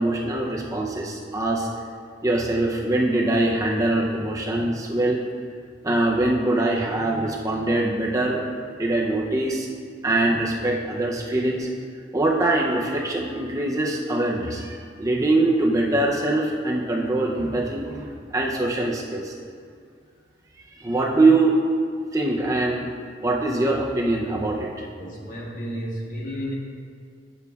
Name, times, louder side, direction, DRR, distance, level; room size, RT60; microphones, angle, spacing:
voice 1, 0.0-1.7 2.2-5.2 5.8-8.4 8.8-9.7 10.0-11.7 12.1-19.3 20.8-21.6 22.1-22.9 23.2-24.9, right 2 dB, 20° right, -3 dB, 0.5 m, -23 dB
voice 2, 25.0-26.5, equal, 45° left, -4 dB, 1.3 m, -32 dB
8.1 x 6.9 x 2.3 m, 2.1 s
head